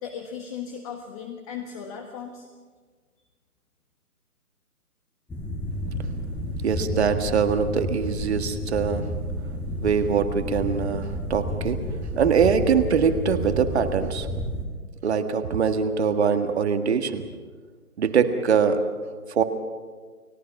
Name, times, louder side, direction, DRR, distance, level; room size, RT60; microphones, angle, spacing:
voice 1, 0.0-2.5, left 7 dB, 25° left, 4 dB, 1.4 m, -36 dB
sound 1, 5.3-14.6, equal, 5° left, 1.4 m, -30 dB
voice 2, 6.6-9.1 9.8-11.8 12.1-14.3 15.0-17.3 18.0-18.8 19.3-19.4, right 6 dB, 45° right, 8 dB, 1.8 m, -23 dB
29.5 x 17.5 x 6.0 m, 1.5 s
figure-of-eight pair, 140°, 45 cm